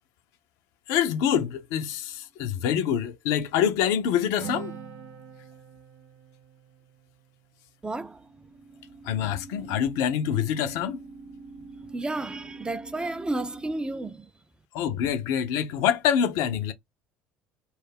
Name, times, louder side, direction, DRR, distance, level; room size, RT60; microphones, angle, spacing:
voice 1, 0.9-4.7 9.0-11.0 14.7-16.7, left 9 dB, 70° left, 0.5 m, -26 dB
sound 1, 1.5-1.8 7.9-14.1, right 3 dB, 40° right, 0.7 m, -46 dB
Acoustic guitar, 4.4-8.1, right 8 dB, 80° right, 0.5 m, -43 dB
voice 2, 7.8-8.5 11.9-14.3, right 2 dB, 15° right, 0.5 m, -32 dB
2.3 x 2.0 x 3.4 m
hypercardioid pair, 65°, 6 cm